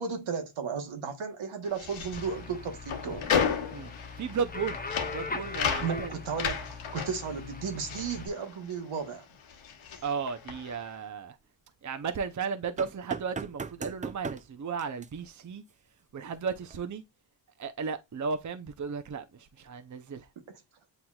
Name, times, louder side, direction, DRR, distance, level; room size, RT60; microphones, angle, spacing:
voice 1, 0.0-3.3 5.8-9.3 20.5-20.6, right 5 dB, 75° right, 1.3 m, -34 dB
sound 1, 1.6-9.1 9.4-10.9, left 7 dB, 75° left, 1.0 m, -34 dB
sound 2, 2.1-8.3, left 4 dB, 20° left, 0.8 m, -41 dB
voice 2, 4.2-4.8 5.1-6.2 10.0-11.4 11.8-15.6 16.1-17.0 17.6-20.3, right 6 dB, 35° right, 0.7 m, -34 dB
sound 3, 12.8-14.5 14.8-15.1 16.7-16.8, right 4 dB, 20° right, 0.3 m, -37 dB
7.9 x 2.8 x 2.3 m
cardioid pair, 55°, 49 cm